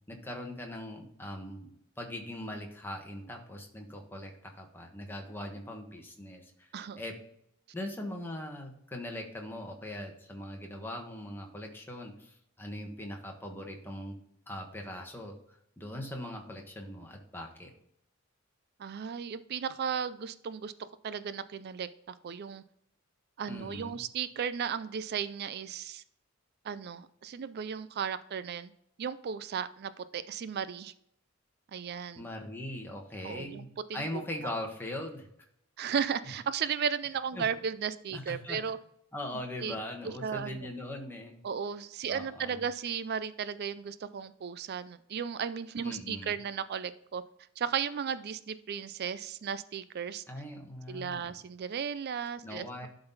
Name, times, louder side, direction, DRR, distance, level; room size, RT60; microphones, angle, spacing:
voice 1, 0.1-1.7 2.0-6.7 7.0-7.2 7.7-14.2 14.5-17.7 23.5-24.0 32.2-33.7 33.9-35.3 37.3-37.4 38.1-38.6 39.1-41.4 42.1-42.6 45.8-46.4 50.3-51.3 52.4-52.9, left 1 dB, 10° left, 1 dB, 1.3 m, -40 dB
voice 2, 18.8-22.6 23.4-26.0 26.6-28.7 29.0-30.9 31.7-32.2 33.2-34.2 35.8-38.8 39.6-39.8 40.0-40.7 41.4-47.2 47.6-50.2 50.9-52.9, right 7 dB, 50° right, 14 dB, 0.4 m, -35 dB
11.5 x 3.9 x 4.0 m, 0.72 s
head